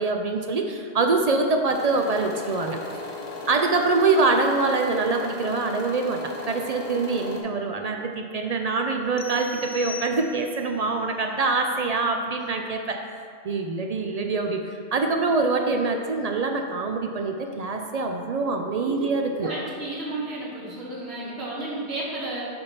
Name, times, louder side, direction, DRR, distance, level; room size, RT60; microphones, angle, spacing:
voice 1, 0.0-2.8 3.5-13.0 13.4-19.5, right 3 dB, 55° right, 4 dB, 0.4 m, -24 dB
sound 1, 1.7-7.4, left 2 dB, 35° left, 0.9 m, -36 dB
sound 2, 9.2-10.7, left 5 dB, 50° left, 0.3 m, -39 dB
voice 2, 19.4-22.4, right 2 dB, 70° right, -7 dB, 1.8 m, -32 dB
6.8 x 3.6 x 5.6 m, 2.4 s
omnidirectional pair, 1.1 m